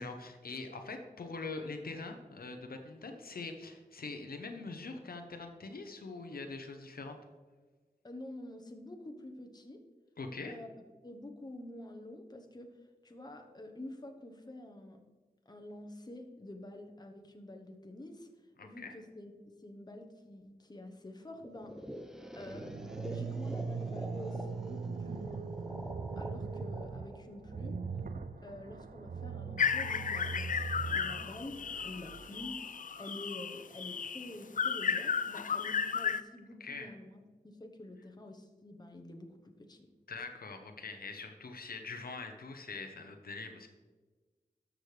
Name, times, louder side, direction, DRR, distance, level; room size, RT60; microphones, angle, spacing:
voice 1, 0.0-7.2 10.2-10.6 18.6-18.9 36.6-36.9 40.1-43.7, left 3 dB, 75° left, 5 dB, 0.8 m, -43 dB
voice 2, 8.0-9.8 10.4-10.7 11.0-12.7 13.0-15.0 15.5-18.3 18.6-21.7 22.4-25.4 26.1-27.8 28.4-39.9, left 1 dB, 25° left, 4 dB, 1.0 m, -48 dB
sound 1, 21.4-28.3, equal, 5° right, 0.7 m, -47 dB
sound 2, 22.4-32.3, right 4 dB, 65° right, 0.5 m, -40 dB
sound 3, 29.6-36.2, left 6 dB, 60° left, 0.4 m, -34 dB
13.0 x 6.3 x 3.3 m, 1.3 s
wide cardioid pair, 80°, 15 cm